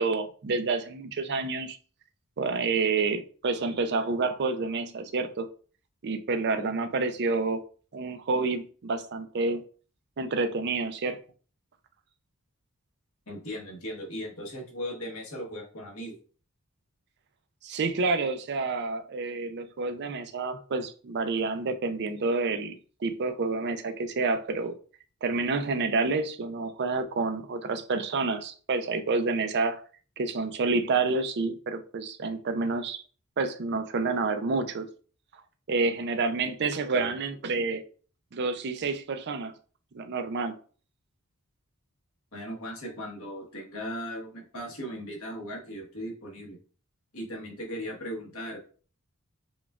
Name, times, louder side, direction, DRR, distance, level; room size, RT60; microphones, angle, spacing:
voice 1, 0.0-1.8 2.4-5.5 6.0-7.6 7.9-9.6 10.2-11.2 17.6-24.8 25.2-29.8 30.2-33.0 33.4-34.9 35.7-37.8 38.3-39.5 39.9-40.5, right 3 dB, 50° right, 0.4 m, -28 dB
voice 2, 13.3-16.2 36.9-37.2 42.3-46.6 47.1-48.6, equal, 70° left, 1.3 m, -38 dB
7.0 x 2.3 x 2.3 m
head